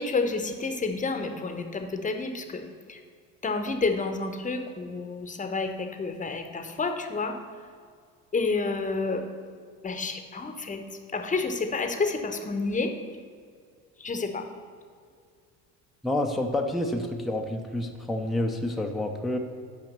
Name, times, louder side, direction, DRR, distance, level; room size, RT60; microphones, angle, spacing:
voice 1, 0.0-2.6 2.9-3.0 3.4-7.4 8.3-9.2 9.8-10.8 11.1-12.9 14.0-14.5, left 3 dB, 20° left, 6 dB, 0.9 m, -29 dB
voice 2, 16.0-19.4, left 1 dB, ahead, 3 dB, 0.6 m, -28 dB
6.1 x 5.0 x 6.6 m, 2.1 s
hypercardioid pair, 65°, 41 cm